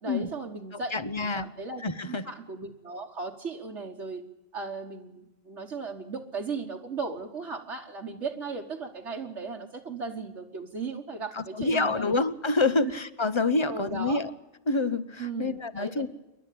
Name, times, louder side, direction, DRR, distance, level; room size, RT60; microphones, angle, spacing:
voice 1, 0.0-4.2 4.5-12.2 12.8-12.9 13.7-14.2 15.2-16.1, right 4 dB, 75° right, -1 dB, 1.7 m, -36 dB
voice 2, 0.7-1.5 1.8-2.3 11.3-14.3 14.7-16.1, left 3 dB, 30° left, 14 dB, 0.8 m, -27 dB
28.0 x 12.0 x 8.4 m, 1.0 s
omnidirectional pair, 1.2 m